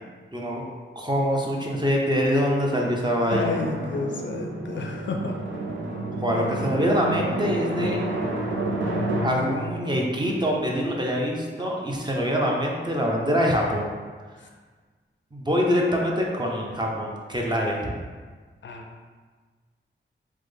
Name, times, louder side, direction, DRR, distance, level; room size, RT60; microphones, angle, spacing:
voice 1, 0.3-0.6 1.0-3.5 6.2-8.0 9.2-13.9 15.3-17.9, equal, 20° right, -1 dB, 0.5 m, -24 dB
voice 2, 3.2-5.3 18.6-18.8, left 4 dB, 65° left, 1 dB, 0.5 m, -31 dB
Drum, 3.3-11.6, right 2 dB, 70° right, 0.5 m, -30 dB
3.3 x 2.1 x 3.3 m, 1.5 s
wide cardioid pair, 70°, 20 cm